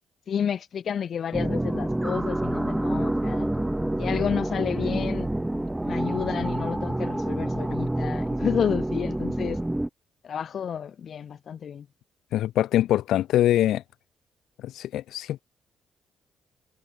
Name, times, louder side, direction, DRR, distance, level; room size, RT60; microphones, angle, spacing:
voice 1, 0.3-3.5 4.0-5.3 5.8-9.6 10.2-11.9, left 8 dB, 55° left, 2.3 m, -30 dB
sound 1, 1.3-9.9, right 1 dB, 10° right, 1.1 m, -27 dB
voice 2, 12.3-13.8 14.6-15.4, left 13 dB, 80° left, 1.3 m, -23 dB
cardioid pair, 90°, 0 cm